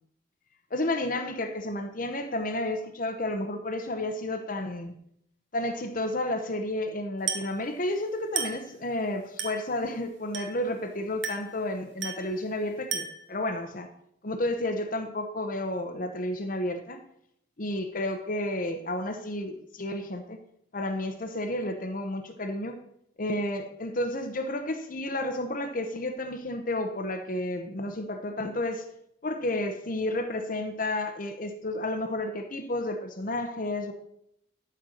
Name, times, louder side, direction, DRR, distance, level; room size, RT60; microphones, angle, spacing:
voice 1, 0.7-4.9 5.5-13.9 14.2-17.0 17.6-20.4 20.7-22.8 23.2-28.8 29.2-33.9, left 1 dB, 45° left, 7 dB, 0.9 m, -31 dB
Glass, 7.3-7.6 8.4-8.7 9.4-9.7 10.3-10.7 11.2-11.6 12.0-12.3 12.9-13.3, right 6 dB, 70° right, 1.7 m, -33 dB
12.5 x 4.5 x 6.5 m, 0.75 s
head